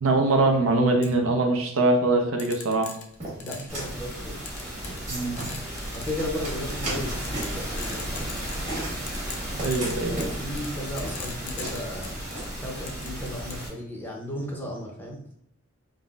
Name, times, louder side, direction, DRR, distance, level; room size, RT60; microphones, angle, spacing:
voice 1, 0.0-2.9 5.1-5.5 9.6-10.2, right 2 dB, 80° right, 3 dB, 0.5 m, -22 dB
sound 1, 1.0-1.1 2.4-3.8 4.5-5.1 5.4-6.2 6.7-6.9 7.2-8.7 9.1-12.5 12.9-13.7, left 6 dB, 60° left, 0.4 m, -40 dB
sound 2, 3.2-12.4, right 1 dB, 35° right, 1.3 m, -37 dB
voice 2, 3.4-4.4 5.9-8.2 10.0-12.3 12.6-15.3, left 1 dB, 10° left, -1 dB, 0.5 m, -35 dB
sound 3, 3.7-13.7, right 1 dB, 15° right, 0.9 m, -34 dB
3.6 x 2.0 x 2.3 m, 0.69 s
head